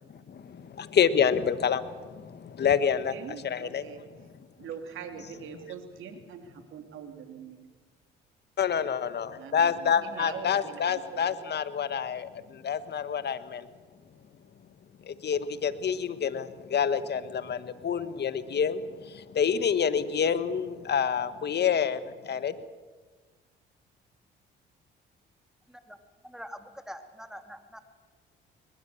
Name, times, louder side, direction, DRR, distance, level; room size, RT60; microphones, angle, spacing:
voice 1, 0.7-3.1 3.4-3.8 8.6-13.6 15.1-18.8 19.1-22.0 22.2-22.5, left 7 dB, 50° left, 13 dB, 1.5 m, -27 dB
voice 2, 2.8-4.0 4.6-7.6 9.4-11.3, right 7 dB, 70° right, 5 dB, 3.4 m, -42 dB
voice 3, 26.2-27.8, equal, ahead, 7 dB, 3.0 m, -44 dB
21.5 x 21.0 x 7.3 m, 1.4 s
supercardioid pair, 65°, 21 cm